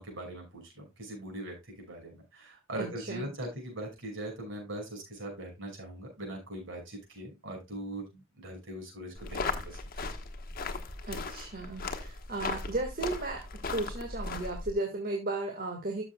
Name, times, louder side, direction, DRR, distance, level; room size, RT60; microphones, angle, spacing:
voice 1, 0.0-9.8, right 1 dB, 60° right, 1 dB, 5.5 m, -41 dB
voice 2, 2.8-3.3 11.0-13.4 13.7-16.0, right 2 dB, 45° right, 2 dB, 1.7 m, -35 dB
sound 1, 9.2-14.7, left 3 dB, 45° left, 1.3 m, -37 dB
13.0 x 6.8 x 2.3 m, 0.24 s
head